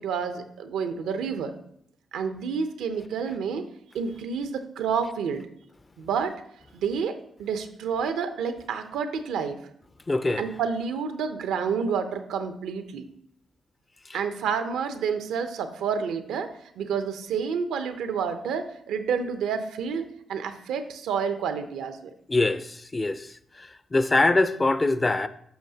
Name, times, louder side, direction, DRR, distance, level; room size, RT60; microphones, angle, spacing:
voice 1, 0.0-1.5 2.1-3.7 3.9-5.5 6.0-6.3 6.7-9.6 10.4-13.1 14.1-22.1, right 6 dB, 90° right, 0.6 m, -29 dB
voice 2, 10.1-10.4 22.3-25.3, left 2 dB, 30° left, 0.5 m, -24 dB
10.0 x 5.7 x 2.8 m
cardioid pair, 65°, 0 cm